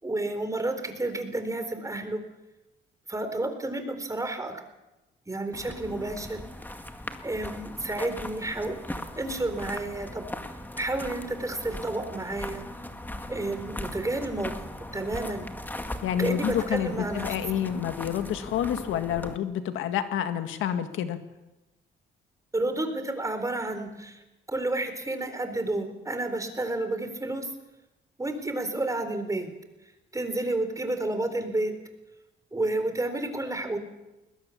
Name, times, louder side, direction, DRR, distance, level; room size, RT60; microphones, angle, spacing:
voice 1, 0.0-2.2 3.1-4.6 5.3-6.4 7.2-10.3 10.8-12.6 13.3-14.7 14.9-15.5 16.2-17.3 22.5-24.2 24.5-27.5 28.2-29.5 30.1-31.7 32.5-33.8, right 2 dB, 15° right, 7 dB, 4.0 m, -30 dB
sound 1, 5.5-19.4, left 1 dB, 10° left, 2.0 m, -39 dB
voice 2, 16.0-21.2, left 9 dB, 90° left, 8 dB, 1.8 m, -28 dB
21.0 x 20.5 x 7.3 m, 1.0 s
cardioid pair, 90°, 20 cm